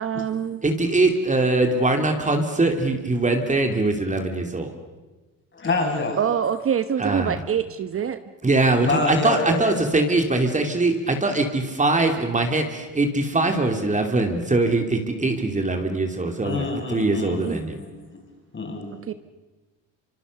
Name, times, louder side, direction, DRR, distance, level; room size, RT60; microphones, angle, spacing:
voice 1, 0.0-0.6 6.2-8.2 17.4-17.6 19.1-19.2, right 8 dB, 40° right, 11 dB, 1.0 m, -25 dB
voice 2, 0.6-4.7 7.0-7.4 8.4-17.8, right 2 dB, 20° right, 5 dB, 3.1 m, -22 dB
voice 3, 5.5-6.2 8.8-9.8 16.4-18.2 18.5-19.0, left 3 dB, 35° left, 2 dB, 7.1 m, -27 dB
25.5 x 25.0 x 6.8 m, 1.2 s
supercardioid pair, 85°, 35 cm